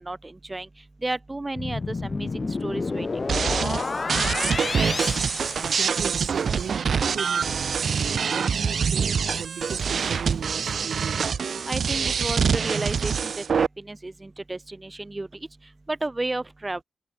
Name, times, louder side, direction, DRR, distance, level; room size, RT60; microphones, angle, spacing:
voice 1, 0.0-3.1 11.7-16.8, right 2 dB, 15° right, 1.5 m, -33 dB
sound 1, 1.6-6.3, left 3 dB, 30° left, 1.8 m, -30 dB
sound 2, 3.3-13.7, right 6 dB, 60° right, 0.6 m, -25 dB
voice 2, 3.5-3.9 5.2-11.3, right 8 dB, 85° right, 7.5 m, -38 dB
wide cardioid pair, 145°, 0 cm